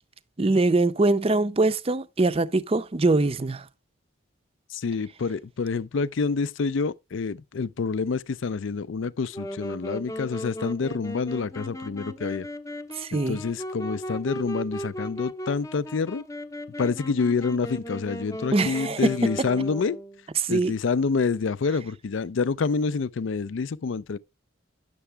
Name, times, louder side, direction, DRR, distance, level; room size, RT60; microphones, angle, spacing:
voice 1, 0.4-3.7 12.9-13.4 18.5-19.5 20.4-20.7, right 2 dB, 30° right, 0.5 m, -23 dB
voice 2, 4.7-12.5 13.1-16.2 16.8-20.0 20.5-24.2, left 4 dB, 65° left, 0.4 m, -27 dB
Wind instrument woodwind instrument, 9.3-20.2, equal, 15° left, 0.7 m, -37 dB
9.9 x 6.9 x 3.3 m
head